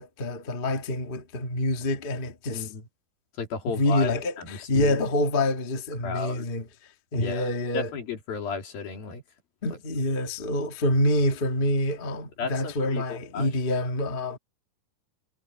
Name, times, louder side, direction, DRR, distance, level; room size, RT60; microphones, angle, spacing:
voice 1, 0.0-2.7 3.7-6.6 7.1-7.9 9.6-14.4, left 1 dB, 45° left, 0.7 m, -26 dB
voice 2, 3.4-4.1 4.4-5.0 6.0-6.5 7.2-9.2 12.4-13.5, left 5 dB, 85° left, 5.3 m, -34 dB
omnidirectional pair, 4.1 m